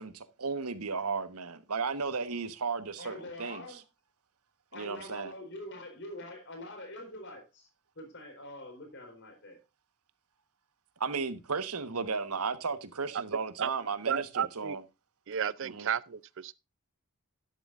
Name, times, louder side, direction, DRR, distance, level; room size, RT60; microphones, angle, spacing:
voice 1, 0.0-3.6 4.7-5.3 11.0-14.8 15.6-15.9, right 4 dB, 80° right, 1.2 m, -34 dB
voice 2, 3.0-3.8 4.7-7.7 8.0-9.6, left 1 dB, 55° left, 4.4 m, -45 dB
voice 3, 14.0-14.8 15.3-16.5, right 8 dB, 55° right, 0.5 m, -32 dB
12.0 x 11.5 x 2.5 m
head